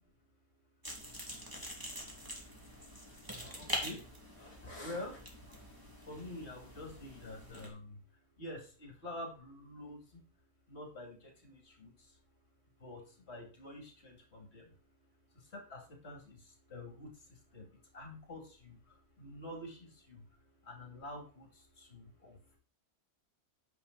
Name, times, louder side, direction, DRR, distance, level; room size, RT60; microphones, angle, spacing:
sound 1, 0.8-7.7, equal, 15° right, 2.2 m, -44 dB
voice 1, 3.4-4.0 4.3-5.6 6.0-8.0 8.4-10.2 10.7-12.2 12.8-14.8 15.3-22.6, left 1 dB, 40° left, 2 dB, 2.8 m, -48 dB
9.7 x 6.7 x 3.9 m, 0.37 s
omnidirectional pair, 1.7 m